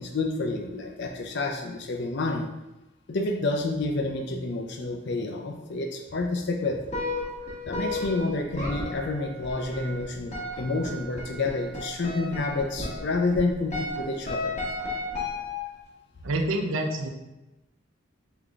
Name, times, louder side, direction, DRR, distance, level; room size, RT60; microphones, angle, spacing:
voice 1, 0.0-2.5 3.1-6.8 7.7-14.5, left 3 dB, 55° left, 2 dB, 0.4 m, -29 dB
sound 1, 6.9-15.9, left 2 dB, 35° left, 1.0 m, -34 dB
voice 2, 16.2-17.1, right 1 dB, 80° right, 3 dB, 0.6 m, -27 dB
3.8 x 3.5 x 3.5 m, 0.99 s
head